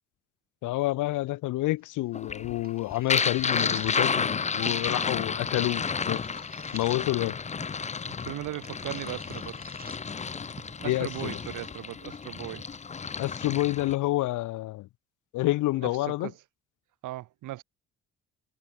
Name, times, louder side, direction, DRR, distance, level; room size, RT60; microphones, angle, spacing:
voice 1, 0.6-6.4 6.7-7.4 10.8-11.4 13.2-14.9 15.3-16.3, left 17 dB, 85° left, 0.8 m, -28 dB
sound 1, 1.8-12.7, right 5 dB, 30° right, 3.1 m, -52 dB
sound 2, 2.1-14.0, left 5 dB, 25° left, 0.6 m, -31 dB
voice 2, 8.1-9.6 10.8-12.6 15.8-16.3 17.0-17.6, right 16 dB, 90° right, 2.4 m, -38 dB
cardioid pair, 90°, 30 cm